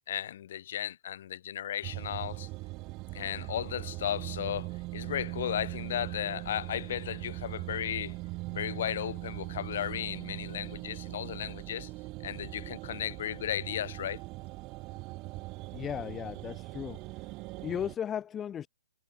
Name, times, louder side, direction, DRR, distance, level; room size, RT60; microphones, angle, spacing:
voice 1, 0.1-2.5 3.1-8.2 8.5-11.9 12.2-14.2, left 11 dB, 50° left, 4.5 m, -35 dB
sound 1, 1.8-17.9, right 22 dB, 25° right, 2.1 m, -40 dB
voice 2, 15.7-17.3 17.6-18.7, left 9 dB, 15° left, 3.3 m, -36 dB
hypercardioid pair, 160°, 0 cm